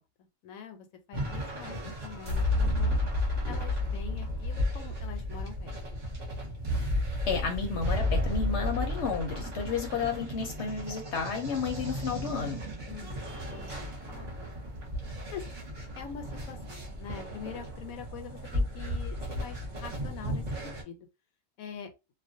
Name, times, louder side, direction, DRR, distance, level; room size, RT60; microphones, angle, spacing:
voice 1, 0.4-3.0 3.5-6.0 12.9-14.5 15.3-15.4 16.0-21.1 21.6-21.9, left 8 dB, 90° left, 1.0 m, -45 dB
sound 1, 1.1-20.8, left 1 dB, 35° right, 0.9 m, -33 dB
voice 2, 7.3-12.6, left 5 dB, 65° left, 0.8 m, -32 dB
2.4 x 2.1 x 2.6 m
omnidirectional pair, 1.4 m